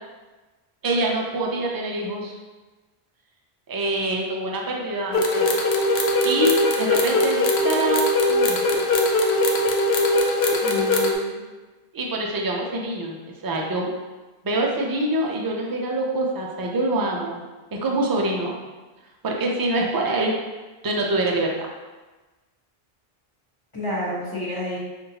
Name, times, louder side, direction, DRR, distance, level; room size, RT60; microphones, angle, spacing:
voice 1, 0.8-2.4 3.7-5.5 6.2-8.7 11.9-13.2 13.4-13.9 14.4-17.4 17.7-18.6 19.2-20.4 20.8-21.7, right 2 dB, 35° right, 0 dB, 0.3 m, -25 dB
sound 1, 5.1-11.1, left 1 dB, 85° left, 0.8 m, -20 dB
voice 2, 10.6-11.4 23.7-24.8, left 1 dB, 25° left, -7 dB, 1.0 m, -30 dB
5.4 x 2.5 x 2.8 m, 1.2 s
omnidirectional pair, 1.0 m